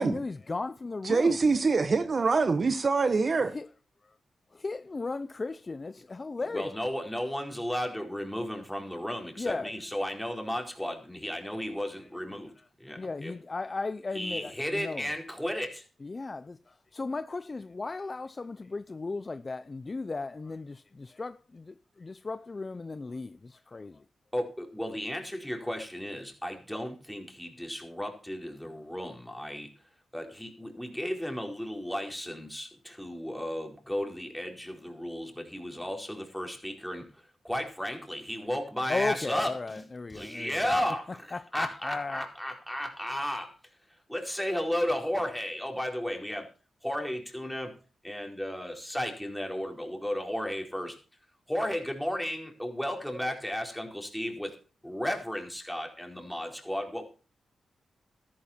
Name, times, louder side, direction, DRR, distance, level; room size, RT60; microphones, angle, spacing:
voice 1, 0.0-1.4 3.5-3.7 4.5-6.7 9.4-9.7 12.6-12.7 13.0-15.1 16.0-24.0 38.9-40.7 41.3-42.3, left 3 dB, 40° left, 0.7 m, -36 dB
voice 2, 1.0-3.5, right 4 dB, 50° right, 1.2 m, -25 dB
voice 3, 6.5-12.5 12.8-13.3 14.1-15.8 24.3-29.7 30.1-37.0 37.4-39.5 40.1-43.5 44.1-46.5 46.8-47.7 48.0-51.0 51.5-54.5 54.8-57.1, equal, 5° left, 4.6 m, -34 dB
13.5 x 11.5 x 4.5 m
cardioid pair, 55°, 0 cm